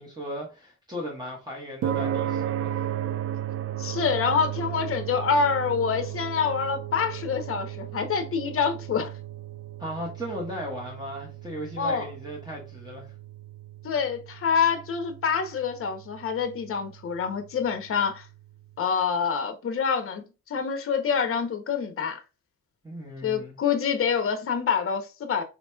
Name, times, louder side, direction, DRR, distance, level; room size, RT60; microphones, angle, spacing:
voice 1, 0.0-2.8 9.8-13.1 22.8-23.6, equal, 15° right, 1.2 m, -36 dB
sound 1, 1.8-18.3, right 11 dB, 50° right, 0.5 m, -35 dB
voice 2, 3.8-9.1 11.8-12.1 13.8-18.3 18.8-22.2 23.2-25.4, left 6 dB, 45° left, 0.8 m, -26 dB
4.3 x 2.9 x 2.3 m
cardioid pair, 90°, 30 cm